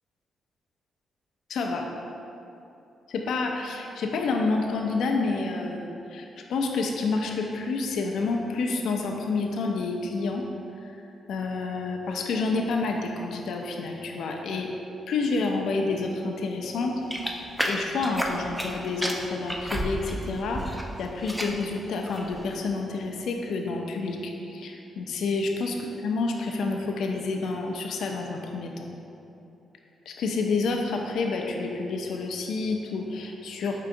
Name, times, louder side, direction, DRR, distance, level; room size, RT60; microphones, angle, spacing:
voice 1, 1.5-1.9 3.1-10.4 10.8-11.0 11.3-14.7 15.1-16.9 17.7-25.8 26.0-28.9 30.1-33.7, left 3 dB, 80° left, 2 dB, 0.3 m, -29 dB
sound 1, 17.1-18.7 19.0-20.8 21.1-21.6 22.1-22.4, equal, 5° right, 0.4 m, -31 dB
4.8 x 3.7 x 2.5 m, 2.8 s
cardioid pair, 95°, 0 cm